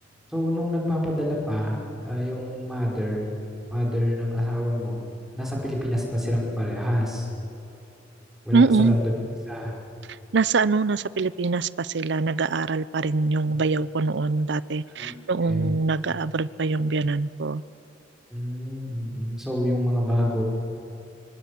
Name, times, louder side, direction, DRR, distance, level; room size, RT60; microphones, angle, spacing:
voice 1, 0.3-1.7 2.0-3.2 3.7-5.0 5.3-7.3 8.4-9.1 9.5-9.7 14.9-15.1 15.4-15.8 18.3-20.4, left 1 dB, ahead, -3 dB, 5.1 m, -26 dB
voice 2, 8.5-9.0 10.3-17.6, right 4 dB, 60° right, 18 dB, 0.6 m, -23 dB
25.0 x 24.5 x 8.4 m, 2.8 s
head